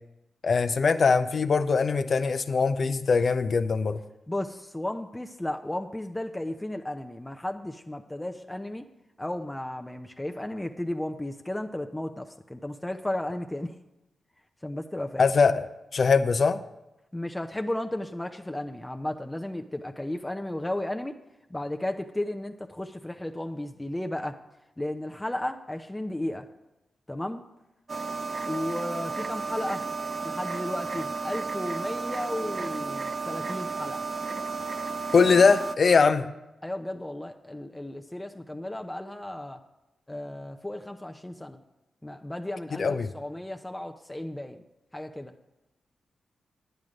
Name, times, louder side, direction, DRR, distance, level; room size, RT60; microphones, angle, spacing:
voice 1, 0.4-4.0 15.2-15.7 15.9-16.6 35.1-36.3 42.8-43.1, left 5 dB, 60° left, 10 dB, 0.6 m, -22 dB
voice 2, 4.3-8.9 9.2-13.8 14.6-15.2 17.1-21.2 21.5-24.4 24.8-26.5 27.1-27.4 28.5-29.9 30.2-34.1 36.6-39.6 40.1-41.6 42.0-44.6 44.9-45.3, left 1 dB, 15° left, 5 dB, 0.7 m, -34 dB
sound 1, 27.9-35.8, right 4 dB, 45° right, 0.5 m, -33 dB
9.4 x 9.1 x 5.1 m, 0.95 s
supercardioid pair, 45°, 0 cm